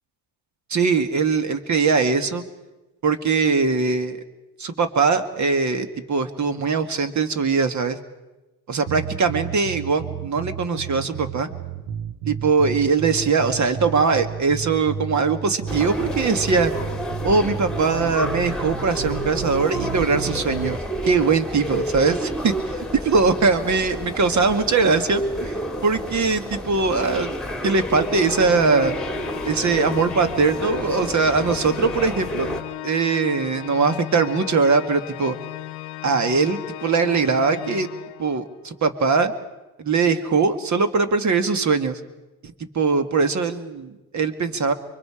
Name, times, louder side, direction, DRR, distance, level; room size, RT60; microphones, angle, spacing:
voice 1, 0.7-2.4 3.0-4.2 4.6-8.0 8.7-11.5 12.3-16.7 17.2-20.8 21.0-22.5 23.1-27.4 27.6-29.0 29.4-32.6 32.8-35.4 36.0-37.9 38.2-39.3 39.8-42.0 42.4-44.7, right 4 dB, 45° right, 9 dB, 1.9 m, -21 dB
sound 1, 8.9-20.8, right 8 dB, 65° right, 1.1 m, -32 dB
sound 2, 15.7-32.6, equal, ahead, 2.4 m, -30 dB
Organ, 28.0-38.6, left 16 dB, 85° left, 0.9 m, -36 dB
24.5 x 23.5 x 4.9 m, 1.1 s
cardioid pair, 85°, 39 cm